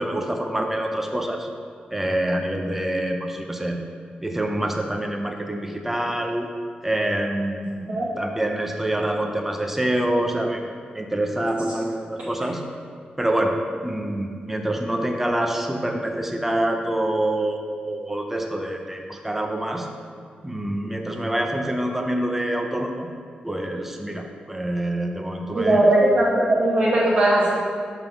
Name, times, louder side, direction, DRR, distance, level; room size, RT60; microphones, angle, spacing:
voice 1, 0.0-1.5 1.9-3.8 4.2-6.5 6.8-10.7 10.9-12.6 13.2-13.6 13.8-17.6 17.9-19.9 20.4-23.1 23.4-25.8, right 1 dB, 10° right, 3 dB, 0.6 m, -26 dB
voice 2, 25.5-27.5, right 1 dB, 65° right, -10 dB, 1.2 m, -18 dB
5.8 x 3.6 x 5.7 m, 2.1 s
wide cardioid pair, 120°, 3 cm